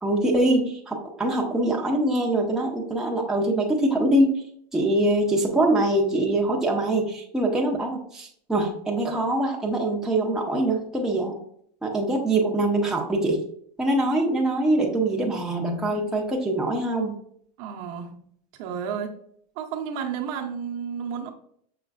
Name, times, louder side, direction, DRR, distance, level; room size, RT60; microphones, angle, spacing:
voice 1, 0.0-4.3 4.7-11.4 11.8-13.4 13.8-17.1, right 1 dB, 5° right, 0.7 m, -23 dB
voice 2, 17.6-18.2 18.6-19.2 19.6-21.3, right 7 dB, 55° right, 0.8 m, -32 dB
5.9 x 3.1 x 2.4 m
supercardioid pair, 145°, 21 cm